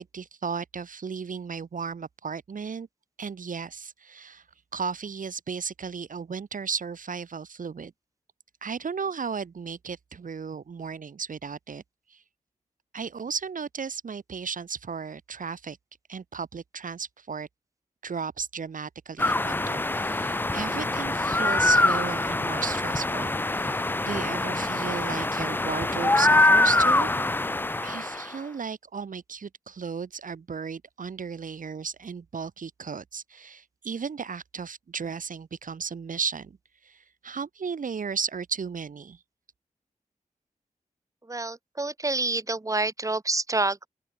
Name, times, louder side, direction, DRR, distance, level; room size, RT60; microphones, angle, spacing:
voice 1, 0.0-2.9 3.2-4.4 4.7-7.9 8.6-11.8 12.1-12.2 12.9-15.8 16.1-17.5 18.0-27.1 27.8-36.6 36.8-39.2, right 6 dB, 75° right, 2.8 m, -35 dB
sound 1, 19.2-28.3, left 2 dB, 15° left, 0.5 m, -24 dB
voice 2, 41.3-43.9, right 2 dB, 25° right, 1.8 m, -28 dB
open air
wide cardioid pair, 85°, 14 cm